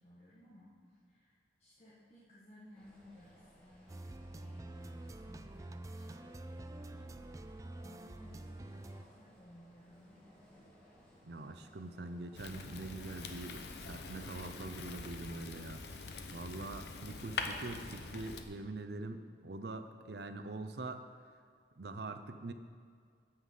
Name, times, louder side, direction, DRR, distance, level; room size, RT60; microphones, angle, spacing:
voice 1, 0.0-7.0 7.4-10.7, equal, 35° left, -9 dB, 1.6 m, -59 dB
sound 1, 2.7-15.0, equal, 5° left, 1.8 m, -63 dB
sound 2, 3.9-9.0, right 1 dB, 20° right, 0.3 m, -47 dB
voice 2, 11.3-13.6 13.9-15.8 16.3-21.0 21.8-22.5, right 2 dB, 70° right, 8 dB, 0.6 m, -44 dB
Fire, 12.3-18.4, left 4 dB, 70° left, 0.8 m, -44 dB
9.8 x 5.7 x 7.4 m, 2.1 s
head